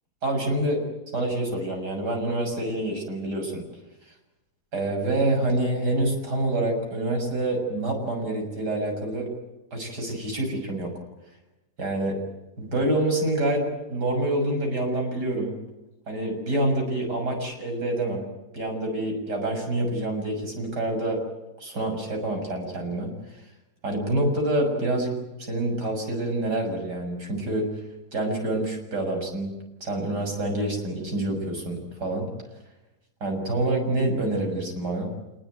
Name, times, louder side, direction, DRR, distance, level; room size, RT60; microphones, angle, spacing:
voice 1, 0.2-0.8 1.1-3.6 4.7-9.3 9.7-10.9 11.8-12.1 12.6-15.5 16.1-18.2 18.5-21.2 21.6-23.1 23.8-27.7 28.1-29.5 29.8-32.3 33.2-35.1, right 1 dB, 80° right, 3 dB, 7.3 m, -27 dB
27.5 x 20.5 x 9.3 m, 0.99 s
omnidirectional pair, 1.8 m